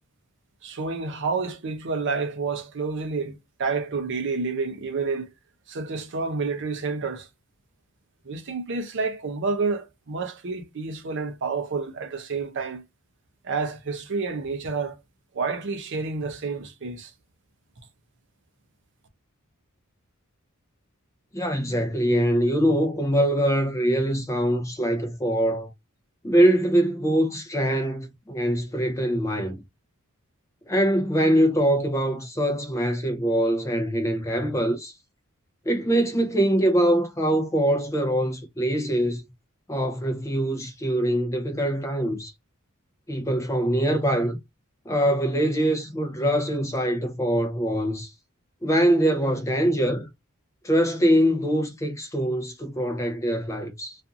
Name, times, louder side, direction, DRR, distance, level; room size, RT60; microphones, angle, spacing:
voice 1, 0.6-5.3 5.7-7.3 8.3-12.8 13.4-15.0 15.3-17.1, right 4 dB, 55° right, 0.6 m, -29 dB
voice 2, 21.3-25.7 26.2-29.6 30.7-34.9 35.7-39.2 39.7-42.3 43.1-44.4 44.9-48.1 48.6-50.1 50.6-54.0, right 1 dB, 15° left, 0.4 m, -23 dB
2.5 x 2.4 x 2.6 m
head